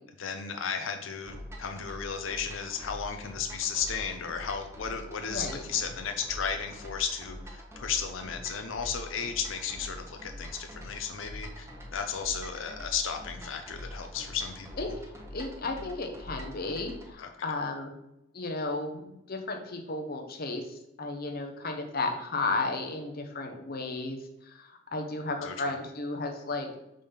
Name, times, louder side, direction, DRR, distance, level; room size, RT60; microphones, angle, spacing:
voice 1, 0.2-15.0 17.2-17.3 25.4-25.6, left 6 dB, 80° left, 6 dB, 0.6 m, -34 dB
sound 1, 1.3-17.1, equal, 15° right, 0.8 m, -44 dB
voice 2, 5.3-5.6 14.8-17.9 18.3-24.2 24.4-26.7, left 3 dB, 50° left, 4 dB, 0.9 m, -34 dB
5.1 x 3.5 x 5.6 m, 0.86 s
head